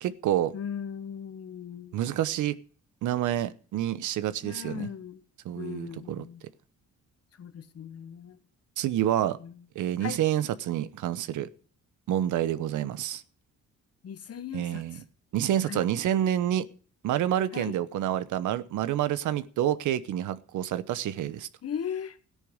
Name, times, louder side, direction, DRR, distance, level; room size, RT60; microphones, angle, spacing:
voice 1, 0.0-0.5 1.9-2.5 3.0-4.9 5.4-6.2 8.8-9.4 9.7-11.5 12.1-13.2 14.5-15.0 15.3-16.7 17.0-21.5, right 11 dB, 80° right, 1.0 m, -28 dB
voice 2, 0.5-2.0 4.4-5.2 5.5-6.4 7.4-8.4 9.4-9.5 10.0-10.2 14.0-14.8 15.7-15.9 17.5-17.8 21.6-22.2, left 8 dB, 55° left, 1.4 m, -38 dB
14.0 x 10.0 x 6.4 m
cardioid pair, 90°, 30 cm